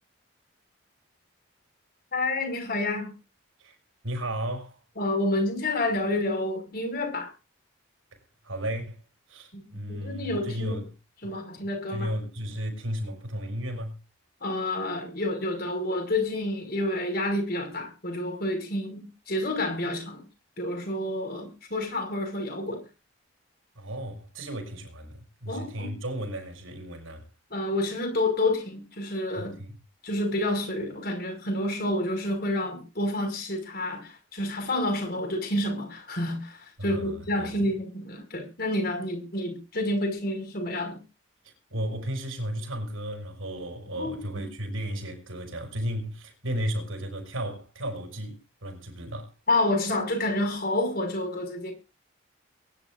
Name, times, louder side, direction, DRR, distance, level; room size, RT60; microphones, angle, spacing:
voice 1, 2.1-3.1 5.0-7.3 9.5-9.6 9.9-10.8 11.2-12.1 14.4-20.2 20.6-22.8 25.5-25.9 27.5-29.6 30.0-41.0 43.9-44.4 49.5-51.7, left 1 dB, 45° left, 5.7 m, -29 dB
voice 2, 4.0-4.8 8.4-9.0 9.3-10.9 11.2-11.3 11.9-14.0 23.8-27.3 29.4-29.7 36.8-37.5 41.4-49.3, equal, 85° right, 6.1 m, -34 dB
23.0 x 11.0 x 2.6 m
head